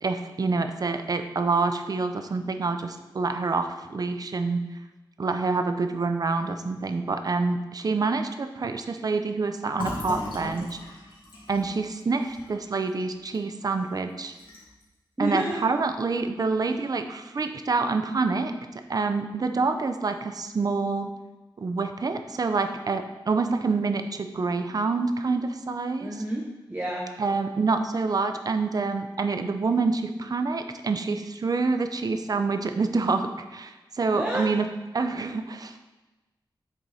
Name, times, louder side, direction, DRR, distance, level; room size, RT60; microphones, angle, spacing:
voice 1, 0.0-4.6 5.2-10.8 11.5-14.3 15.2-18.5 18.9-21.1 21.6-26.1 27.2-34.6 34.9-35.8, right 4 dB, 50° right, 7 dB, 0.6 m, -27 dB
Fill (with liquid), 9.7-13.4 13.7-13.9 14.2-14.8, left 2 dB, 80° left, 2.4 m, -37 dB
voice 2, 15.2-15.6 26.0-27.1 34.1-34.5, right 1 dB, 15° right, -2 dB, 1.0 m, -29 dB
8.0 x 6.5 x 4.2 m, 1.1 s
wide cardioid pair, 135°, 8 cm